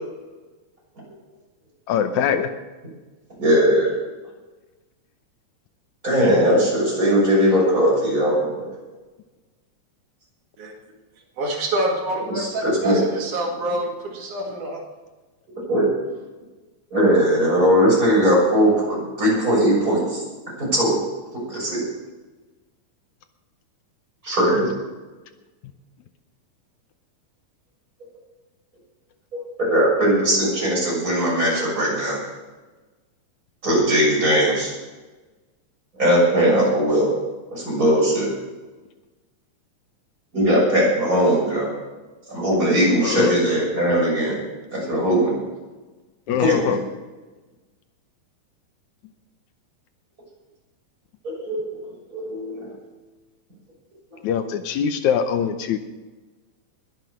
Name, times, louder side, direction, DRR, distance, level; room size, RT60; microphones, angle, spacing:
voice 1, 1.9-2.5 43.0-43.3 46.3-46.8 54.2-55.8, left 8 dB, 75° left, 8 dB, 2.1 m, -22 dB
voice 2, 3.4-3.9 6.0-8.7 12.3-13.0 13.7-13.8 15.7-15.9 16.9-20.2 20.6-21.0 21.5-21.8 24.2-24.7 29.6-32.2 33.6-34.7 36.0-37.1 37.5-38.3 40.3-41.7 42.3-44.4 44.7-45.3 46.4-46.6 51.2-51.6 52.1-52.8, equal, 25° right, -4 dB, 6.9 m, -19 dB
voice 3, 11.4-14.8, right 1 dB, 75° right, 0 dB, 3.8 m, -26 dB
21.0 x 7.8 x 6.4 m, 1.2 s
omnidirectional pair, 3.5 m